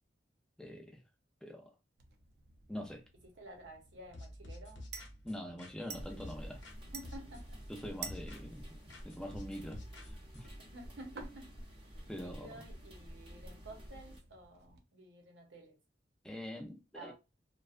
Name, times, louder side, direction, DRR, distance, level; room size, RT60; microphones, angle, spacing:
voice 1, 0.6-1.0 1.4-1.7 2.7-3.0 5.2-6.6 7.7-8.6 9.0-10.5 12.1-12.5 16.2-17.1, equal, 5° left, 0.5 m, -44 dB
sound 1, 2.0-14.8, right 6 dB, 60° right, 0.5 m, -54 dB
voice 2, 3.2-4.9 6.5-7.6 10.6-11.6 12.1-15.8 16.9-17.1, right 1 dB, 85° right, 0.8 m, -52 dB
sound 2, 4.1-6.8 7.0-8.6 8.9-10.5, left 1 dB, 80° left, 0.7 m, -50 dB
sound 3, 5.9-14.2, equal, 30° right, 0.7 m, -50 dB
2.5 x 2.2 x 2.4 m
head